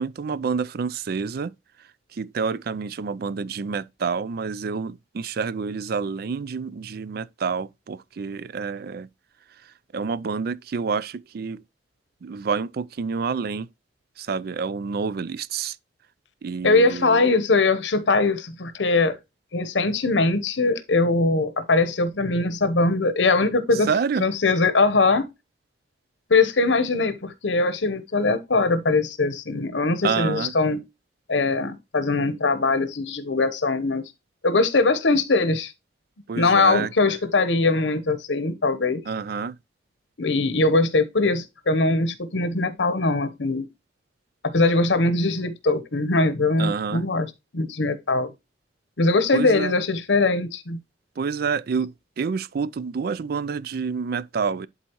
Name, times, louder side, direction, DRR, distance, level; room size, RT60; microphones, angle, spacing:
voice 1, 0.0-1.5 2.1-9.1 9.9-11.6 12.2-13.7 14.2-15.8 16.4-17.3 23.9-24.2 30.0-30.5 36.3-37.2 39.1-39.6 46.6-47.0 49.3-49.8 51.2-54.7, right 5 dB, 55° right, 0.4 m, -28 dB
voice 2, 16.6-19.2 19.5-23.9 24.2-25.3 26.3-30.8 31.3-34.1 34.4-35.7 36.3-39.0 40.2-43.7 44.4-48.3 49.0-50.8, left 3 dB, 85° left, 0.9 m, -21 dB
11.0 x 4.1 x 3.0 m
head